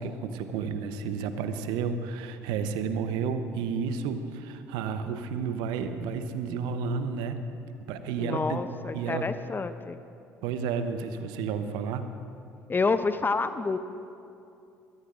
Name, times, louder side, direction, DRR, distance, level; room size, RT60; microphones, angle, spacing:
voice 1, 0.0-7.4 7.9-8.6 8.9-9.3 10.4-12.1, right 6 dB, 70° right, 9 dB, 0.9 m, -31 dB
voice 2, 8.2-10.0 12.7-13.8, left 4 dB, 25° left, 11 dB, 0.7 m, -28 dB
22.5 x 16.0 x 2.6 m, 2.6 s
hypercardioid pair, 55°, 8 cm